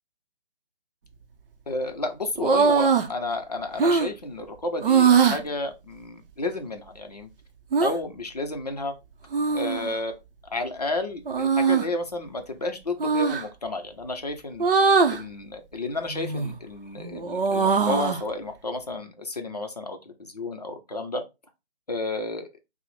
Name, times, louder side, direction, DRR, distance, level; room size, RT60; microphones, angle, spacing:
voice 1, 1.7-7.3 7.8-8.9 9.5-10.1 10.5-14.7 15.1-21.2 21.9-22.5, left 2 dB, 40° left, 0.5 m, -31 dB
sound 1, 2.4-3.1 3.8-4.1 4.8-5.4 7.7-7.9 9.3-10.0 11.3-11.9 13.0-13.4 14.6-15.2 16.1-16.6 17.0-18.2, right 5 dB, 60° right, 0.6 m, -21 dB
5.9 x 2.0 x 3.1 m
hypercardioid pair, 180°, 32 cm